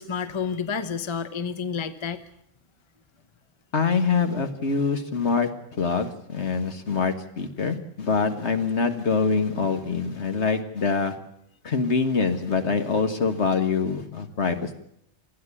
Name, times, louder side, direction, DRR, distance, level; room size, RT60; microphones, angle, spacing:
voice 1, 0.0-2.2, left 6 dB, 25° left, 11 dB, 0.9 m, -30 dB
voice 2, 3.7-5.5 5.8-11.2 11.6-14.7, left 5 dB, 65° left, 7 dB, 1.8 m, -24 dB
28.5 x 9.6 x 9.9 m, 0.74 s
omnidirectional pair, 1.3 m